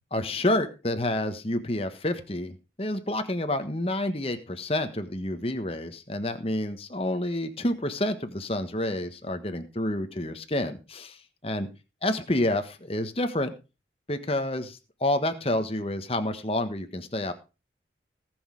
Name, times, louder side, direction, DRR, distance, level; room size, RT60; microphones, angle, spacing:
voice 1, 0.1-11.2 11.4-11.7 12.0-13.5 14.1-17.3, left 1 dB, 30° left, 8 dB, 1.4 m, -29 dB
18.5 x 6.4 x 4.8 m, 0.30 s
head